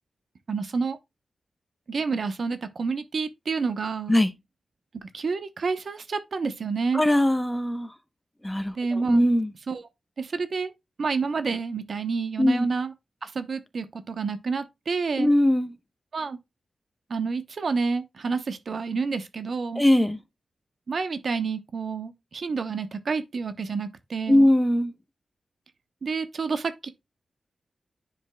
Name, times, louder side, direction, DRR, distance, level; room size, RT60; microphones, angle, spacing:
voice 1, 0.5-1.0 1.9-4.2 5.0-7.0 8.7-9.3 9.7-9.8 10.2-10.7 11.0-12.9 13.2-15.3 16.1-16.4 17.1-19.8 20.9-24.5 26.0-26.9, right 4 dB, 60° right, 0.9 m, -29 dB
voice 2, 6.9-7.9 8.4-9.5 12.4-12.7 15.2-15.7 19.7-20.2 24.3-24.9, left 1 dB, 10° left, 0.9 m, -21 dB
10.0 x 5.3 x 2.2 m
wide cardioid pair, 135°, 0 cm